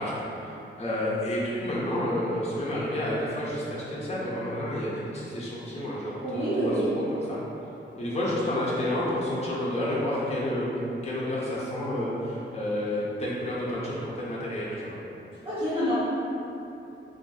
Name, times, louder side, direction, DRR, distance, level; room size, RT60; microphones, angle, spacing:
voice 1, 0.0-7.4 8.0-14.9, left 1 dB, 30° left, -8 dB, 0.6 m, -30 dB
voice 2, 6.2-6.9 15.4-15.9, equal, 30° right, -14 dB, 0.8 m, -27 dB
3.1 x 2.6 x 2.3 m, 2.9 s
wide cardioid pair, 130°, 20 cm